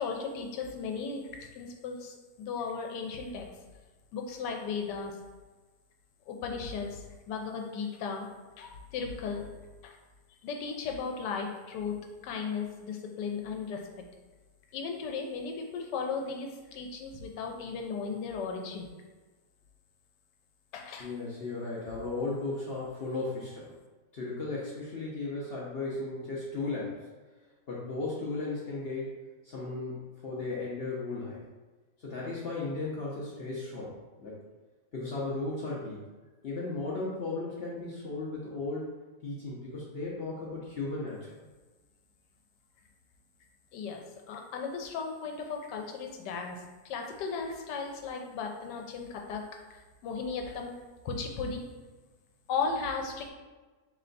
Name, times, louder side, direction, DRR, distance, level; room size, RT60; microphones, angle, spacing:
voice 1, 0.0-3.5 4.1-5.2 6.3-8.3 8.6-9.5 9.8-9.9 10.4-12.0 12.2-13.8 14.7-18.9 20.7-21.1 43.7-49.4 49.7-50.7 51.0-51.7 52.5-53.3, left 5 dB, 85° left, 2 dB, 1.2 m, -36 dB
voice 2, 21.0-23.7 24.1-27.1 27.7-31.4 32.0-34.4 34.9-36.1 36.4-38.9 39.2-41.3, left 3 dB, 65° left, -5 dB, 0.6 m, -36 dB
3.3 x 3.0 x 3.9 m, 1.3 s
omnidirectional pair, 1.8 m